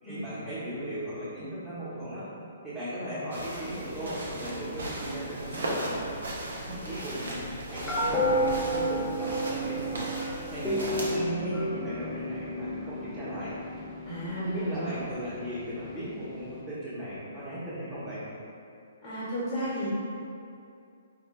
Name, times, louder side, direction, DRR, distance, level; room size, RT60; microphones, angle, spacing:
voice 1, 0.0-2.3 2.6-6.0 6.8-10.1 10.5-13.6 14.4-18.3, right 1 dB, 15° right, -15 dB, 1.0 m, -37 dB
sound 1, 3.3-11.1, right 1 dB, 70° right, 0.6 m, -37 dB
sound 2, 3.6-16.6, equal, 10° left, 0.5 m, -33 dB
voice 2, 6.7-7.0 14.0-14.9 19.0-19.9, equal, 40° left, -11 dB, 1.1 m, -33 dB
4.9 x 2.1 x 2.3 m, 2.5 s
figure-of-eight pair, 130°, 0 cm